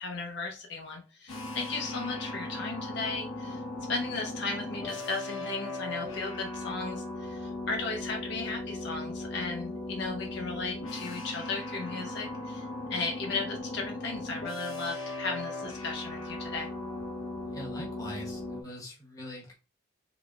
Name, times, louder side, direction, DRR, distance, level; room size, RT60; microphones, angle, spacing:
voice 1, 0.0-3.6 3.9-16.7, left 3 dB, 55° left, 1 dB, 0.7 m, -36 dB
sound 1, 1.3-18.6, left 2 dB, 80° left, 1.0 m, -38 dB
voice 2, 17.4-19.5, left 1 dB, 15° left, -3 dB, 1.1 m, -42 dB
3.8 x 3.4 x 2.3 m, 0.34 s
head